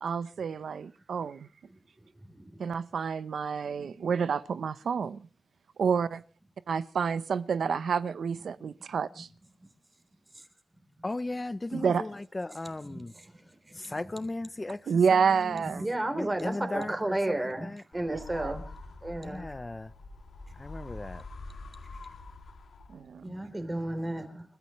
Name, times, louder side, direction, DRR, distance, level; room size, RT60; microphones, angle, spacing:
voice 1, 0.0-1.5 2.6-5.2 5.8-6.2 6.7-9.3 11.7-12.0 14.9-15.9 16.7-16.9 18.1-18.5 22.9-23.3, right 6 dB, 85° right, 0.8 m, -29 dB
voice 2, 3.6-4.1 12.9-13.0 13.7-13.9 15.6-18.6 19.0-19.5 23.2-24.4, right 1 dB, 20° right, 3.7 m, -33 dB
voice 3, 11.0-13.1 13.8-14.8 15.1-15.2 15.5-15.6 16.1-17.8 19.2-19.9 20.6-21.2, left 2 dB, 20° left, 0.7 m, -36 dB
sound 1, 17.9-23.2, left 2 dB, 80° left, 2.7 m, -45 dB
29.5 x 14.0 x 3.2 m
wide cardioid pair, 135°, 0 cm